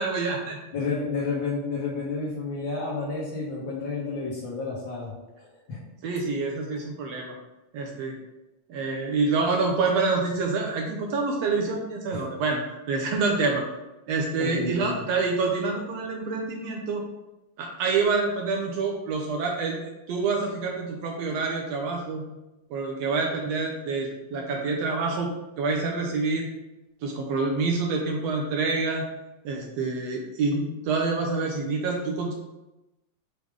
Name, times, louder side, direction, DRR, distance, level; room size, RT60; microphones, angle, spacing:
voice 1, 0.0-0.6 6.0-7.3 7.7-8.1 8.7-12.6 12.9-13.6 14.1-17.0 17.6-19.8 20.1-22.2 22.7-25.3 25.6-26.5 27.0-29.0 29.4-32.3, right 4 dB, 75° right, 0 dB, 1.6 m, -27 dB
voice 2, 0.7-5.1 5.4-5.8 12.1-12.2 14.4-15.0, left 4 dB, 65° left, -5 dB, 1.1 m, -31 dB
6.1 x 3.5 x 4.8 m, 0.98 s
omnidirectional pair, 3.6 m